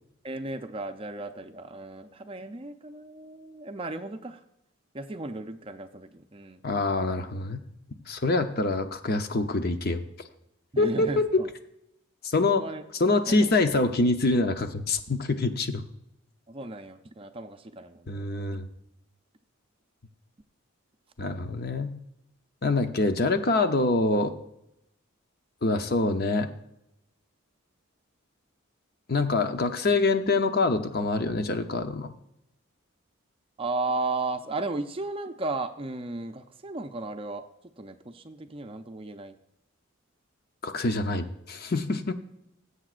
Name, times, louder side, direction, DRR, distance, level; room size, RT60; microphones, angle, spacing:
voice 1, 0.2-4.4 4.9-6.6 10.7-11.5 12.6-12.8 13.3-13.5 16.5-18.6 33.6-37.4 37.8-39.4, right 2 dB, 25° right, 8 dB, 0.5 m, -35 dB
voice 2, 6.6-7.6 8.1-10.0 10.8-11.2 12.2-12.6 12.9-15.8 18.1-18.7 21.2-21.9 22.6-24.3 25.6-26.5 29.1-32.1 40.6-42.1, left 3 dB, 50° left, 8 dB, 0.7 m, -25 dB
20.0 x 8.0 x 2.5 m, 0.82 s
head